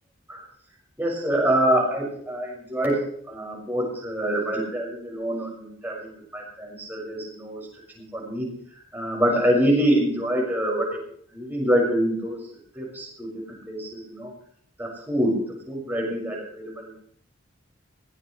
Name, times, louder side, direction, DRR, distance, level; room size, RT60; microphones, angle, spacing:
voice 1, 1.0-3.0 3.3-7.6 7.9-8.5 8.7-11.0 11.3-12.4 12.7-14.3 14.8-15.4 15.7-16.9, right 1 dB, 10° right, -2 dB, 6.1 m, -25 dB
21.0 x 18.0 x 3.3 m, 0.62 s
head